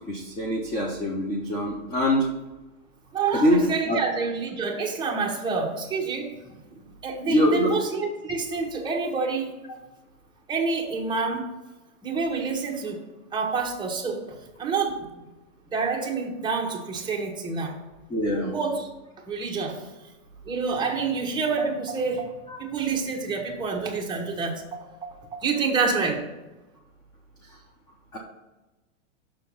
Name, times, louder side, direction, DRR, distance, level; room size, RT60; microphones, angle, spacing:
voice 1, 0.1-2.3 3.3-3.6 3.9-4.0 7.2-7.8 18.1-18.6 22.5-22.6 28.1-28.2, equal, 10° left, 0 dB, 0.4 m, -24 dB
voice 2, 3.1-6.6 7.0-9.5 10.5-11.5 12.0-13.0 13.3-15.1 15.7-17.7 18.4-18.9 19.3-19.8 20.4-24.5 24.8-26.2, right 4 dB, 10° right, -1 dB, 1.0 m, -28 dB
6.2 x 4.5 x 5.5 m, 1.1 s
hypercardioid pair, 140°, 39 cm